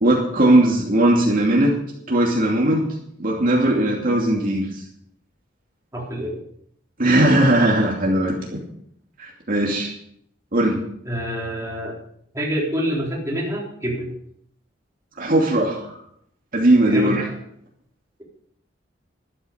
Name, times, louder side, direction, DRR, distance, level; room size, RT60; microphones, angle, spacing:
voice 1, 0.0-1.7 2.1-2.9 3.2-4.8 7.0-8.4 9.2-9.9 10.5-10.8 15.2-16.0 16.5-17.2, right 1 dB, 50° right, -2 dB, 2.7 m, -18 dB
voice 2, 5.9-6.4 9.7-9.9 11.1-12.0 12.3-14.1 16.8-17.2, equal, 15° right, -3 dB, 3.9 m, -27 dB
13.0 x 11.5 x 5.2 m, 0.70 s
head